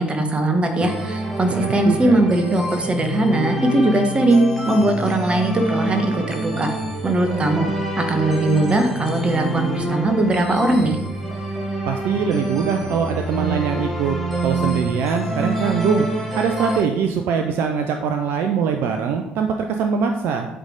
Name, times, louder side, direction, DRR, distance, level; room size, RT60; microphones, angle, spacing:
voice 1, 0.0-6.7 7.0-7.7 8.0-11.0, right 2 dB, 25° right, 5 dB, 1.1 m, -20 dB
sound 1, 0.8-16.8, right 1 dB, 5° right, 2.4 m, -26 dB
voice 2, 1.5-2.2 11.9-14.2 14.4-16.1 16.3-20.5, right 6 dB, 55° right, 5 dB, 0.4 m, -22 dB
7.9 x 3.4 x 3.8 m, 0.93 s
figure-of-eight pair, 50°, 4 cm